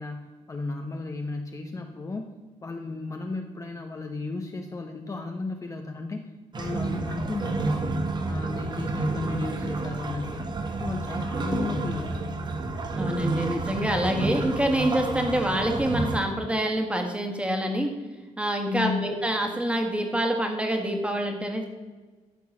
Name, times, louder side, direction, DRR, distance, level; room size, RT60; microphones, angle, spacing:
voice 1, 0.0-2.3 2.6-7.9 8.3-12.3 18.7-19.1, left 3 dB, 25° left, 3 dB, 0.9 m, -34 dB
sound 1, 6.5-16.2, right 2 dB, 35° right, 1.2 m, -30 dB
voice 2, 13.0-17.9 18.4-21.6, right 1 dB, 10° right, 3 dB, 1.9 m, -26 dB
13.0 x 4.6 x 7.2 m, 1.3 s
cardioid pair, 105°, 13 cm